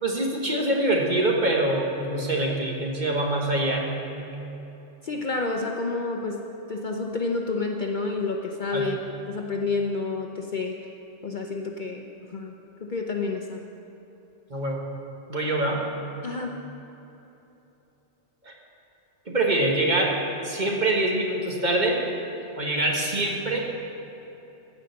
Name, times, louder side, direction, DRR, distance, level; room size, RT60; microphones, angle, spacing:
voice 1, 0.0-4.3 8.7-8.9 14.5-14.8 15.3-15.8 18.4-18.5 19.3-22.0 22.6-23.6, right 1 dB, 40° right, -1 dB, 1.4 m, -25 dB
voice 2, 5.0-6.4 6.7-9.0 9.3-10.8 11.2-12.6 12.8-13.6 16.2-16.5, left 3 dB, 50° left, 2 dB, 0.7 m, -29 dB
14.5 x 5.1 x 7.8 m, 3.0 s
omnidirectional pair, 1.2 m